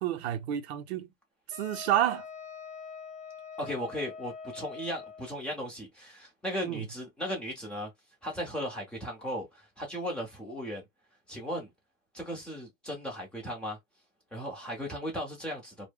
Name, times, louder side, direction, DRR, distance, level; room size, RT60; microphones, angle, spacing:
voice 1, 0.0-1.1 1.5-2.3 6.6-6.8, right 11 dB, 55° right, 0.6 m, -29 dB
Wind instrument woodwind instrument, 1.5-5.4, left 6 dB, 30° left, 0.9 m, -44 dB
voice 2, 3.6-7.9 8.2-10.8 11.3-11.7 12.1-13.8 14.3-15.9, equal, 5° left, 0.5 m, -36 dB
2.1 x 2.0 x 3.4 m
hypercardioid pair, 140°, 40 cm